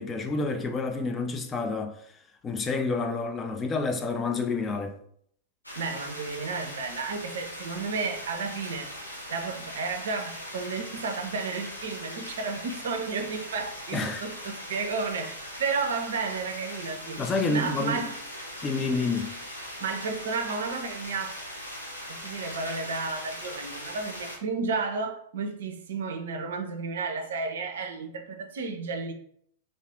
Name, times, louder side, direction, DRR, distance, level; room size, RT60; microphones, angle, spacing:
voice 1, 0.0-2.0 2.4-5.0 13.9-14.2 17.2-18.0 18.6-19.3, left 3 dB, 20° left, 0.3 m, -29 dB
sound 1, 5.6-24.4, equal, 85° left, 0.6 m, -40 dB
voice 2, 5.7-8.9 9.3-18.2 19.8-21.4 22.1-29.1, right 4 dB, 60° right, 0.4 m, -32 dB
2.4 x 2.4 x 3.5 m
figure-of-eight pair, 95°, 0 cm